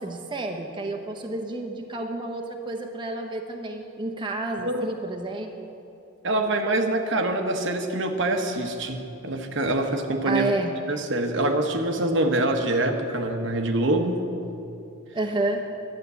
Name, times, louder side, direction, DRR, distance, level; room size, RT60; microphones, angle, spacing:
voice 1, 0.0-5.7 10.3-10.7 15.1-15.7, right 2 dB, 25° right, 2 dB, 0.8 m, -30 dB
voice 2, 6.2-10.5 10.9-14.2, right 2 dB, 65° right, 4 dB, 1.0 m, -25 dB
12.0 x 8.1 x 8.1 m, 2.8 s
head